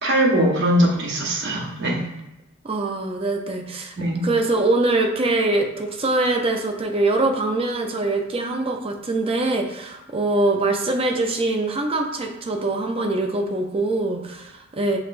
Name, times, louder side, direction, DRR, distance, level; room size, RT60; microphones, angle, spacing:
voice 1, 0.0-2.0 4.0-4.2, right 1 dB, 55° right, -2 dB, 1.1 m, -21 dB
voice 2, 2.6-3.9 4.2-15.0, right 2 dB, 25° right, 3 dB, 0.5 m, -23 dB
6.1 x 3.2 x 2.5 m, 0.91 s
head